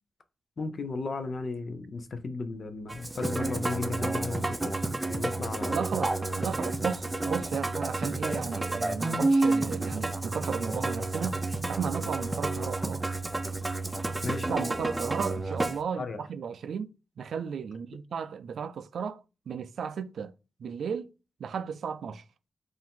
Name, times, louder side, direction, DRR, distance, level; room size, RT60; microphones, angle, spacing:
voice 1, 0.6-4.7 5.1-5.8 14.2-14.6 16.0-16.2, left 3 dB, 55° left, 0.6 m, -35 dB
Musical instrument, 2.9-15.8, right 2 dB, 20° right, 0.5 m, -30 dB
voice 2, 5.7-11.4 11.7-13.0 14.5-16.9 17.2-20.3 20.6-21.1 21.4-22.2, right 6 dB, 85° right, 0.3 m, -34 dB
4.5 x 2.6 x 3.6 m
wide cardioid pair, 95°, 0 cm